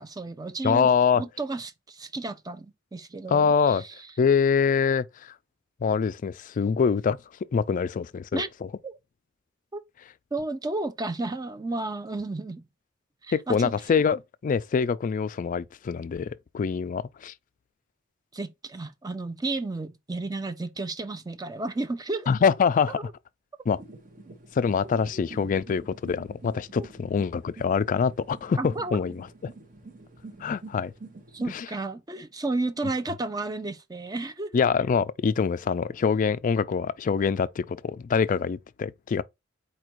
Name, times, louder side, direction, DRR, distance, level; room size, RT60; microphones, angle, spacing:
voice 1, 0.0-3.9 8.3-8.5 8.8-8.9 9.7-9.8 10.3-12.7 13.2-13.7 18.3-22.3 22.9-23.1 25.1-25.2 26.8-26.9 28.6-29.0 31.3-34.6, right 2 dB, 20° right, 0.5 m, -32 dB
voice 2, 0.6-1.3 3.3-3.8 4.2-5.3 5.8-7.2 7.5-8.4 13.3-17.3 22.3-23.1 23.7-23.8 24.5-29.5 30.4-30.9 31.5-31.7 34.5-39.2, left 6 dB, 40° left, 0.3 m, -25 dB
sound 1, 23.7-31.5, right 3 dB, 40° right, 0.8 m, -47 dB
4.4 x 2.5 x 4.5 m
head